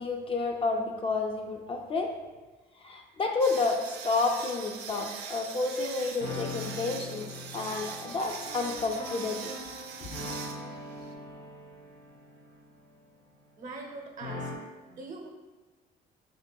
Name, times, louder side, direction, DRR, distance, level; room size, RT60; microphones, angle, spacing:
voice 1, 0.0-2.1 2.8-7.3 7.5-9.5 10.0-10.1, left 3 dB, 30° left, 2 dB, 0.4 m, -30 dB
sound 1, 3.4-11.1, right 7 dB, 80° right, 0.4 m, -42 dB
sound 2, 6.2-13.8 14.2-14.6, left 2 dB, 70° left, 1.2 m, -41 dB
voice 2, 13.6-14.5 14.9-15.3, right 3 dB, 50° right, 1 dB, 0.7 m, -42 dB
3.6 x 3.4 x 2.2 m, 1.2 s
cardioid pair, 110°, 17 cm